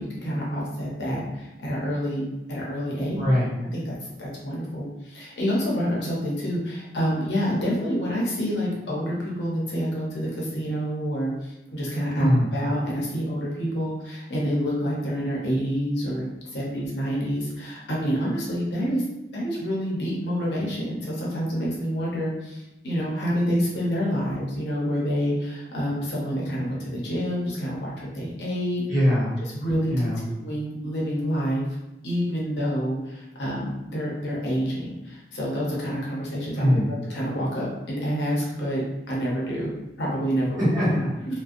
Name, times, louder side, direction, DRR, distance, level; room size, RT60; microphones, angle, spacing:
voice 1, 0.0-3.3 3.7-19.0 19.3-28.8 29.5-31.6 32.0-39.7 40.0-40.6, equal, 80° left, -5 dB, 0.7 m, -28 dB
voice 2, 3.1-3.5 12.1-12.5 28.9-29.4 29.9-30.2 36.6-36.9 40.6-41.3, equal, 20° right, -11 dB, 1.2 m, -22 dB
2.4 x 2.1 x 2.5 m, 0.95 s
head